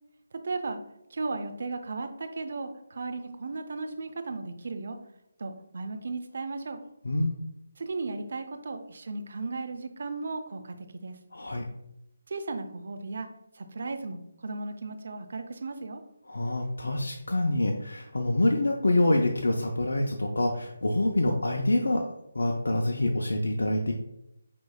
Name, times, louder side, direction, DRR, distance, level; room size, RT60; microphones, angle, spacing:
voice 1, 0.3-0.8 1.1-5.0 5.4-6.8 7.8-11.2 12.3-13.3 13.5-16.0, right 3 dB, 60° right, 7 dB, 0.6 m, -35 dB
voice 2, 7.0-7.4 11.3-11.6 16.3-22.0 22.3-23.9, left 1 dB, 80° left, 1 dB, 0.5 m, -26 dB
6.1 x 3.1 x 2.3 m, 0.85 s
figure-of-eight pair, 160°, 0 cm